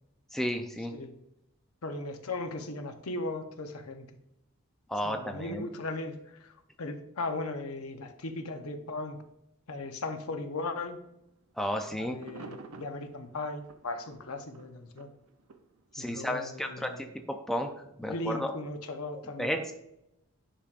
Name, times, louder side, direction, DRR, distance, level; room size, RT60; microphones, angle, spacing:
voice 1, 0.3-0.9 4.9-5.7 11.6-12.2 15.9-17.7 18.0-18.5 19.1-19.7, equal, ahead, 4 dB, 0.4 m, -33 dB
voice 2, 1.8-4.1 5.0-9.2 9.7-11.0 12.0-15.1 16.0-17.1 18.1-19.6, left 2 dB, 85° left, 7 dB, 0.8 m, -37 dB
sound 1, 11.1-11.3 11.7-11.8 12.1-16.4 17.1-17.2, right 4 dB, 85° right, 0.6 m, -50 dB
10.0 x 5.0 x 2.5 m, 0.82 s
head